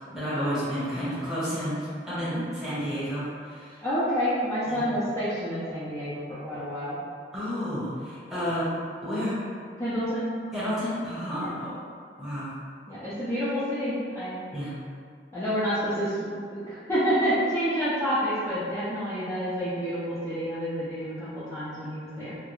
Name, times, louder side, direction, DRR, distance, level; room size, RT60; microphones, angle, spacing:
voice 1, 0.1-3.8 4.7-4.9 7.3-8.7 9.0-9.4 10.5-11.8 12.2-12.5 14.5-14.7, equal, ahead, -12 dB, 0.9 m, -31 dB
voice 2, 3.8-7.0 9.8-10.3 11.4-11.5 12.9-14.4 15.3-22.4, equal, 15° left, -14 dB, 0.5 m, -28 dB
2.3 x 2.1 x 3.0 m, 2.1 s
head